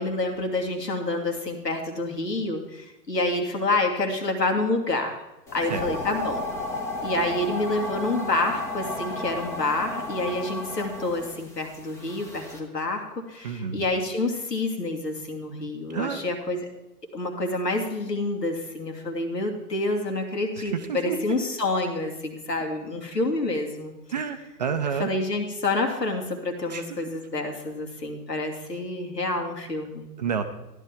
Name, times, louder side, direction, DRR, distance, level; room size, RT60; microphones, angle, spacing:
voice 1, 0.0-5.2 5.5-6.4 7.0-16.7 17.1-23.9 25.0-30.1, left 2 dB, 75° left, 3 dB, 2.4 m, -28 dB
sound 1, 5.5-12.6, left 1 dB, 5° left, 0.7 m, -33 dB
voice 2, 13.4-13.8 15.9-16.2 20.6-21.2 24.1-25.1 26.7-26.8 30.2-30.4, right 7 dB, 25° right, 8 dB, 0.6 m, -29 dB
14.0 x 11.0 x 3.5 m, 0.99 s
figure-of-eight pair, 120°, 49 cm